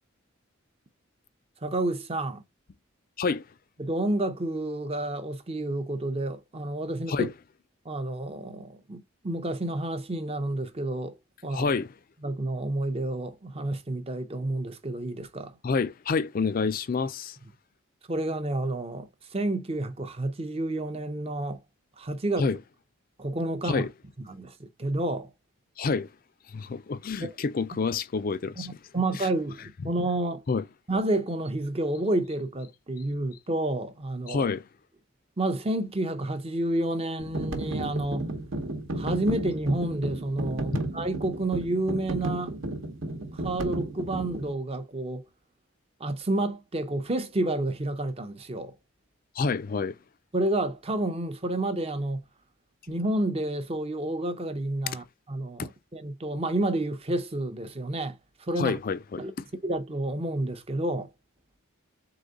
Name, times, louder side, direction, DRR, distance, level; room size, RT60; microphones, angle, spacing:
voice 1, 1.6-2.4 3.8-7.3 7.9-11.2 11.4-11.7 12.2-15.5 18.1-21.6 22.0-22.5 23.2-23.9 24.3-25.3 27.2-27.3 28.6-30.4 30.9-34.5 35.4-38.3 39.0-42.5 43.3-45.3 46.0-48.7 50.3-52.3 52.9-58.8 59.2-59.3 59.6-61.1, right 1 dB, 30° right, 0.6 m, -30 dB
voice 2, 11.5-11.9 15.6-17.4 22.4-22.6 23.6-23.9 25.8-26.1 26.5-28.7 30.5-30.6 34.3-34.6 40.7-40.8 49.4-50.0 55.6-55.7 58.6-59.4, left 4 dB, 40° left, 0.4 m, -28 dB
sound 1, 37.2-44.5, right 2 dB, 65° right, 1.0 m, -33 dB
3.9 x 3.6 x 3.5 m
head